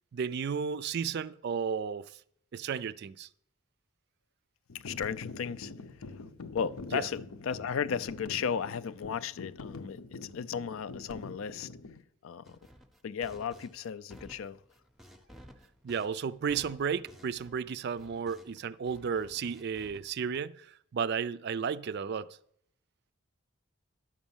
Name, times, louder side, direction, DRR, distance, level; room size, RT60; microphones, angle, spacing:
voice 1, 0.1-2.1 2.5-3.3 6.9-7.0 15.8-22.3, right 6 dB, 50° right, 0.3 m, -33 dB
sound 1, 4.7-12.0, left 3 dB, 80° left, 0.8 m, -45 dB
voice 2, 4.7-6.2 6.5-11.7 12.2-12.6 13.0-14.6, left 7 dB, 65° left, 0.4 m, -35 dB
sound 2, 12.4-18.6 18.9-20.4, equal, ahead, 0.6 m, -55 dB
10.0 x 6.2 x 7.1 m
head